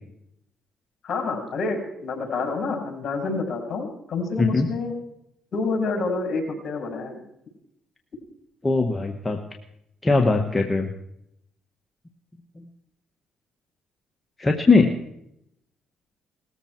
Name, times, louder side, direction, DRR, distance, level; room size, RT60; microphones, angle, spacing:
voice 1, 1.0-5.0 5.5-7.2, left 3 dB, 55° left, 2 dB, 5.9 m, -28 dB
voice 2, 8.6-9.4 10.0-10.9 14.4-14.9, left 3 dB, 20° left, 3 dB, 1.7 m, -20 dB
19.5 x 14.5 x 4.8 m, 0.76 s
cardioid pair, 75°, 0 cm